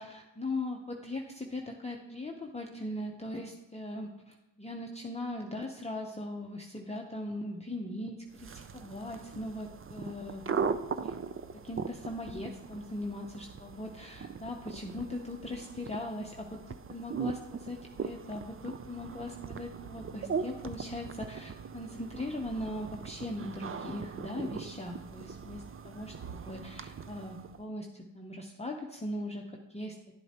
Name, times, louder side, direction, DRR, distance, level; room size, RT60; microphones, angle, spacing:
voice 1, 0.0-10.6 11.0-11.2 11.6-30.0, left 1 dB, 15° left, 1 dB, 0.8 m, -39 dB
sound 1, 8.3-27.6, right 6 dB, 30° right, 0.4 m, -40 dB
10.5 x 7.9 x 2.9 m, 0.97 s
cardioid pair, 65°, 46 cm